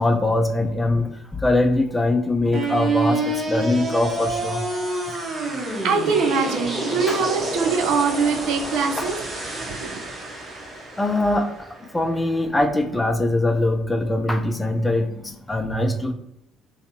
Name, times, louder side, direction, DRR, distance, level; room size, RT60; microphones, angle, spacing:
voice 1, 0.0-4.6 7.1-7.2 9.0-9.1 11.0-11.5 11.9-16.1, left 2 dB, 15° left, 5 dB, 0.5 m, -22 dB
sound 1, 2.5-12.6, right 2 dB, 35° right, 1.0 m, -28 dB
voice 2, 5.8-9.2 9.5-10.0, right 5 dB, 65° right, 4 dB, 0.5 m, -23 dB
3.2 x 2.8 x 2.9 m, 0.78 s
hypercardioid pair, 55°, 0 cm